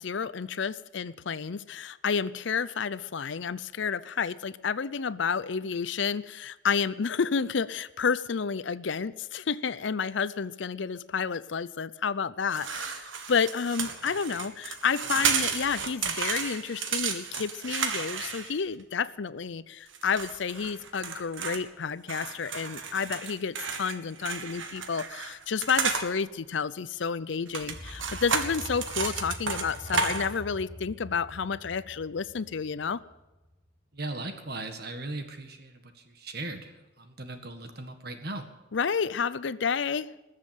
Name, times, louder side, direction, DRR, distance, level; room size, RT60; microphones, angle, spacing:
voice 1, 0.0-33.0 38.7-40.1, left 6 dB, 70° left, 17 dB, 0.6 m, -30 dB
sound 1, 12.5-18.8 19.9-21.6 22.1-26.1 27.5-30.4, right 5 dB, 85° right, 1.6 m, -32 dB
sound 2, 27.6-33.7, equal, 20° right, 5.9 m, -44 dB
voice 2, 33.9-38.5, right 2 dB, 55° right, 6 dB, 1.8 m, -38 dB
20.5 x 7.5 x 9.1 m, 1.0 s
head